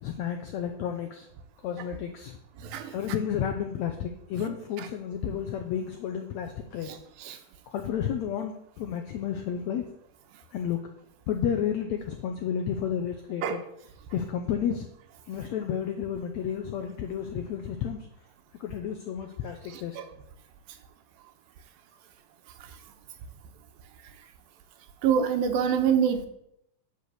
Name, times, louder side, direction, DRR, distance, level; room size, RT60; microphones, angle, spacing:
voice 1, 0.0-1.3 1.6-2.4 2.9-7.0 7.7-9.9 10.5-10.8 11.3-13.6 14.1-14.9 15.3-18.1 18.6-20.0, left 8 dB, 85° left, 5 dB, 1.6 m, -31 dB
voice 2, 2.6-2.9 4.4-4.5 4.8-4.9 6.9-7.4 13.4-13.6 19.7-20.0 25.0-26.3, right 8 dB, 90° right, 7 dB, 2.7 m, -26 dB
9.4 x 5.0 x 7.9 m, 0.76 s
omnidirectional pair, 4.1 m